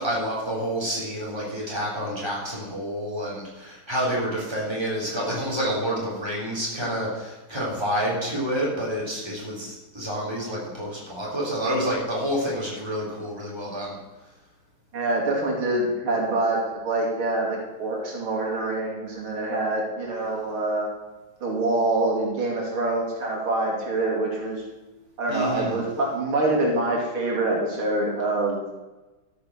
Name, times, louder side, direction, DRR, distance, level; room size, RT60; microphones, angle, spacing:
voice 1, 0.0-14.0 25.3-25.8, equal, 10° right, -4 dB, 3.9 m, -28 dB
voice 2, 14.9-20.9 21.4-24.6 25.2-28.7, right 2 dB, 90° right, -1 dB, 3.5 m, -25 dB
13.0 x 6.8 x 6.7 m, 1.1 s
omnidirectional pair, 2.2 m